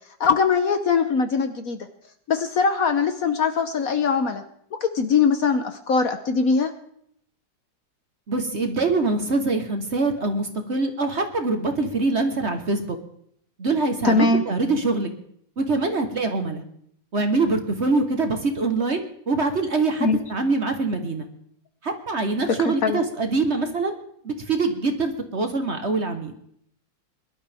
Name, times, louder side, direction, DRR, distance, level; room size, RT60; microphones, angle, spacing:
voice 1, 0.2-1.9 2.3-4.4 4.8-6.7 14.0-14.4 20.0-20.2 22.6-23.0, left 5 dB, 55° left, 8 dB, 1.2 m, -21 dB
voice 2, 8.3-13.0 13.6-15.1 15.6-16.6 17.1-21.3 21.8-24.0 24.2-26.3, right 3 dB, 40° right, 6 dB, 1.4 m, -24 dB
22.5 x 12.0 x 3.5 m, 0.68 s
omnidirectional pair, 2.0 m